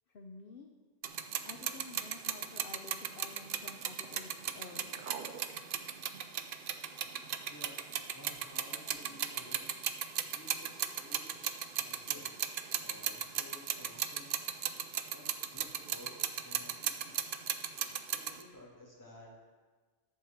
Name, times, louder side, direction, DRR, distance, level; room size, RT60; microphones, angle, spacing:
voice 1, 0.1-0.7 1.4-5.0, left 4 dB, 55° left, 4 dB, 0.8 m, -51 dB
sound 1, 1.0-18.4, right 8 dB, 60° right, 0.6 m, -37 dB
voice 2, 7.4-7.8 8.1-9.7 10.2-12.4 12.8-14.3 15.1-17.4 18.1-19.3, left 1 dB, 15° left, -4 dB, 2.1 m, -54 dB
11.0 x 4.6 x 7.1 m, 1.4 s
omnidirectional pair, 1.3 m